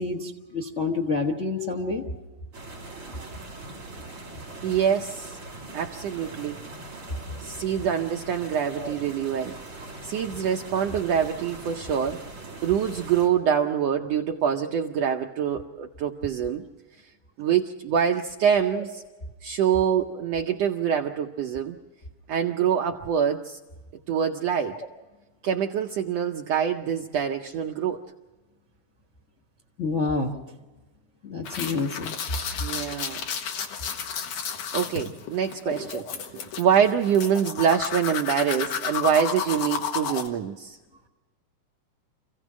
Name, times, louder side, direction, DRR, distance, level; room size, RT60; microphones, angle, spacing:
voice 1, 0.0-2.0 8.8-8.9 18.7-18.8 19.8-20.0 29.8-30.4 31.2-32.1 35.9-36.0, left 3 dB, 45° left, 1 dB, 0.9 m, -28 dB
sound 1, 2.5-13.3, right 2 dB, 45° right, 4.2 m, -41 dB
voice 2, 4.6-5.4 5.7-6.6 7.4-9.5 10.0-12.2 12.6-16.6 17.4-18.9 19.4-21.8 22.3-23.6 24.1-24.8 25.4-28.0 32.6-33.2 34.7-36.0 36.3-40.8, right 8 dB, 75° right, 3 dB, 1.5 m, -25 dB
sound 2, 31.4-40.3, left 7 dB, 70° left, 3.0 m, -32 dB
27.5 x 16.0 x 6.2 m, 1.2 s
omnidirectional pair, 3.8 m